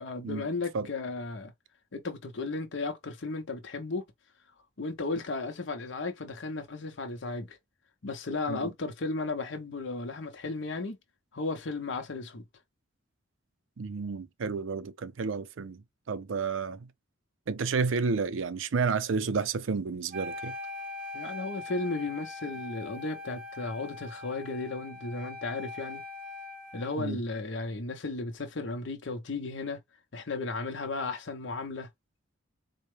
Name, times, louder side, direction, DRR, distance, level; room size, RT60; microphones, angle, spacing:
voice 1, 0.0-1.5 1.9-4.0 4.8-7.6 8.0-11.0 11.3-12.4 21.1-26.0 26.7-29.8 30.1-31.9, left 3 dB, 70° left, 0.7 m, -35 dB
voice 2, 13.8-16.9 17.5-20.6 27.0-27.2, right 5 dB, 75° right, 0.5 m, -31 dB
Wind instrument woodwind instrument, 20.1-27.1, left 2 dB, 45° right, 0.7 m, -41 dB
4.2 x 2.1 x 3.2 m
head